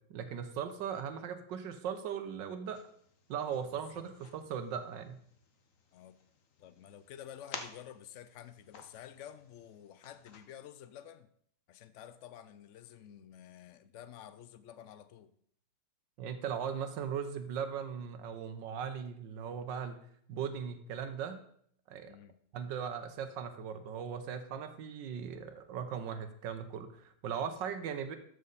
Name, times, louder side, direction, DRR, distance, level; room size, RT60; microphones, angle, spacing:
voice 1, 0.1-2.8 3.3-5.2 16.2-20.0 20.3-21.4 21.9-22.1 22.5-28.2, right 7 dB, 90° right, 9 dB, 1.6 m, -38 dB
sound 1, 2.6-10.4, left 5 dB, 50° left, 1.3 m, -53 dB
voice 2, 3.7-4.0 5.9-6.2 6.6-11.3 11.7-15.3 22.1-22.4, left 10 dB, 85° left, 13 dB, 0.6 m, -51 dB
12.5 x 6.6 x 4.0 m, 0.64 s
omnidirectional pair, 1.9 m